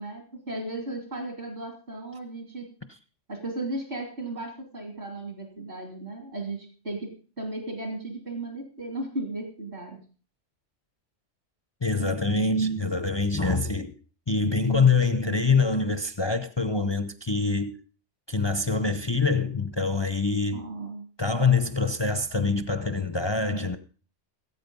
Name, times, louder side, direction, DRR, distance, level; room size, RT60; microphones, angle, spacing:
voice 1, 0.0-2.7 3.3-10.0 20.5-21.0, right 2 dB, 60° right, 3.0 m, -35 dB
voice 2, 11.8-13.9 14.3-17.8 18.3-20.6 21.2-23.8, left 4 dB, 25° left, 0.7 m, -25 dB
17.5 x 8.7 x 5.4 m
omnidirectional pair, 1.3 m